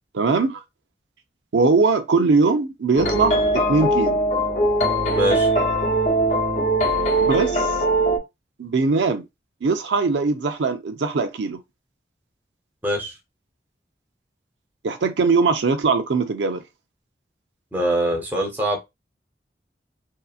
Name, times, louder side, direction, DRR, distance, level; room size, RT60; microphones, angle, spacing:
voice 1, 0.1-0.6 1.5-4.2 7.2-7.7 8.6-9.2 9.6-11.6 14.8-16.6, right 4 dB, 90° right, 0.5 m, -21 dB
sound 1, 3.0-8.2, right 1 dB, 40° left, 0.8 m, -20 dB
voice 2, 5.1-5.5 12.8-13.1 17.7-18.8, equal, 10° right, 0.7 m, -23 dB
2.7 x 2.4 x 2.4 m
head